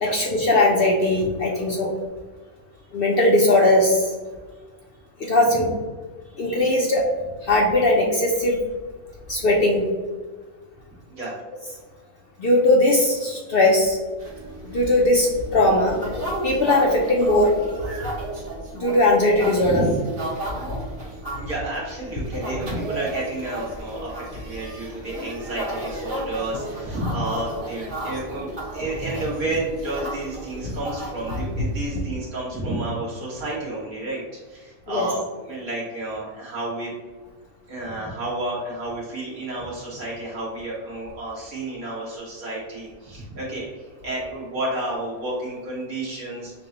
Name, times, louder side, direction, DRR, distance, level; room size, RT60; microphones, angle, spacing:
voice 1, 0.0-1.9 2.9-4.1 5.2-5.7 6.4-7.0 7.4-8.6 9.3-9.8 12.4-14.0 14.6-16.0 16.4-17.5 18.7-19.8 22.3-22.4 30.6-30.7 34.9-35.1, left 1 dB, 65° left, -1 dB, 0.5 m, -19 dB
sound 1, 14.2-32.0, right 1 dB, 65° right, 1.9 m, -34 dB
voice 2, 19.6-19.9 21.4-34.2 34.5-35.2 35.5-36.9 37.7-43.7 44.0-46.5, right 2 dB, 85° right, -6 dB, 2.0 m, -31 dB
6.3 x 2.1 x 2.8 m, 1.4 s
omnidirectional pair, 1.5 m